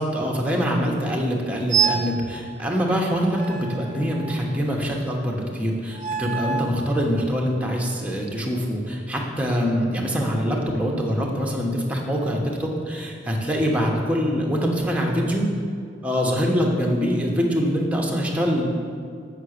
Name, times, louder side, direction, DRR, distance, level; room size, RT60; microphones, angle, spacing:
voice 1, 0.0-15.4 16.0-18.7, equal, 5° right, -1 dB, 1.1 m, -24 dB
sound 1, 1.7-2.2 3.3-4.6 5.9-6.8, right 7 dB, 40° right, 0.7 m, -26 dB
8.2 x 5.9 x 6.5 m, 2.3 s
head